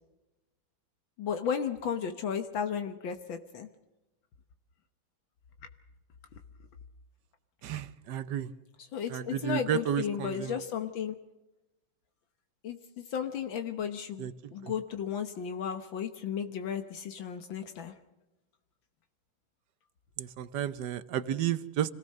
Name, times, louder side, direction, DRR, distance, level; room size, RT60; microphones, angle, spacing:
voice 1, 1.2-3.7 8.9-11.2 12.6-18.0, left 7 dB, 75° left, 8 dB, 1.9 m, -34 dB
voice 2, 7.6-8.5 9.1-10.6 14.2-14.7 20.2-21.9, right 9 dB, 65° right, 14 dB, 1.4 m, -32 dB
26.5 x 17.0 x 6.5 m, 1.0 s
omnidirectional pair, 2.2 m